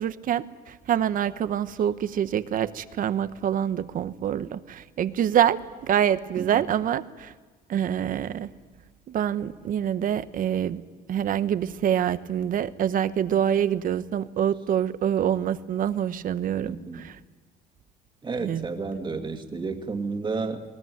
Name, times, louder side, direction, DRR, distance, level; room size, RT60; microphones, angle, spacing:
voice 1, 0.0-7.3 7.7-8.5 9.1-10.8 11.1-17.2 18.4-18.7, right 10 dB, 55° right, 13 dB, 1.0 m, -26 dB
voice 2, 16.6-17.1 18.2-20.6, right 4 dB, 25° right, 5 dB, 2.2 m, -31 dB
20.5 x 19.5 x 9.3 m, 1.4 s
cardioid pair, 110°, 17 cm